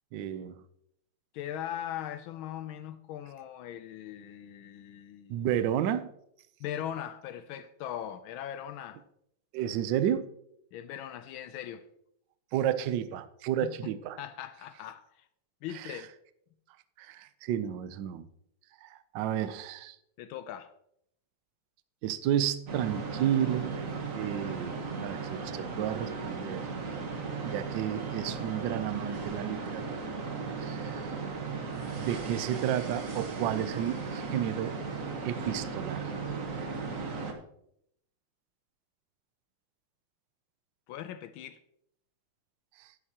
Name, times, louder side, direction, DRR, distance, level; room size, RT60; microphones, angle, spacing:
voice 1, 0.1-0.6 5.3-6.1 9.5-10.3 12.5-14.2 15.7-16.0 17.0-18.3 18.8-20.0 22.0-23.7 24.2-26.6 27.4-29.8 30.6-31.0 32.0-34.7 35.2-36.0, right 10 dB, 70° right, 1.2 m, -31 dB
voice 2, 1.3-5.6 6.6-9.0 10.7-11.8 13.6-13.9 14.2-15.3 15.6-16.1 20.2-20.7 40.9-41.6, left 10 dB, 80° left, 1.4 m, -40 dB
sound 1, 22.7-37.3, right 4 dB, 45° right, 1.4 m, -36 dB
11.0 x 11.0 x 2.8 m
omnidirectional pair, 2.3 m